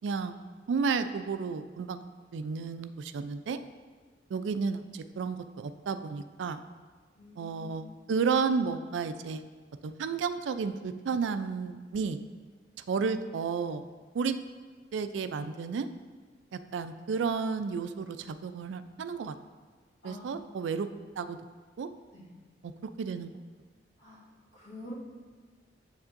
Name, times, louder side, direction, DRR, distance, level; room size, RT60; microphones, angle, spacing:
voice 1, 0.0-0.4 0.7-2.0 2.3-3.6 4.3-6.6 7.4-9.4 9.8-12.2 12.9-13.8 14.1-14.4 14.9-15.9 16.5-19.4 20.0-20.9 21.2-21.4 21.8-21.9 22.6-22.7 23.0-23.4, right 5 dB, 85° right, 11 dB, 0.3 m, -32 dB
voice 2, 7.2-7.8 20.0-20.4 22.1-22.3 24.0-24.2 24.5-24.9, left 1 dB, 70° left, -8 dB, 2.2 m, -46 dB
7.4 x 7.1 x 2.5 m, 1.5 s
head